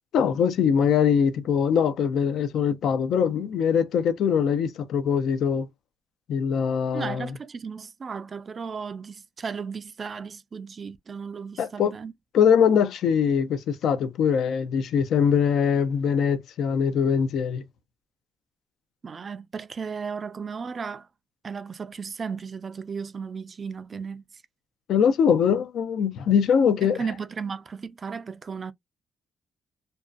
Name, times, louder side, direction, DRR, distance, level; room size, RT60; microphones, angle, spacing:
voice 1, 0.1-5.7 6.3-7.3 11.6-11.9 12.3-17.6 24.9-27.0, left 7 dB, 75° left, 0.5 m, -22 dB
voice 2, 6.9-12.1 19.0-21.1 21.4-24.2 26.8-28.7, right 5 dB, 40° right, 0.3 m, -35 dB
2.6 x 2.2 x 2.3 m
cardioid pair, 90°, 0 cm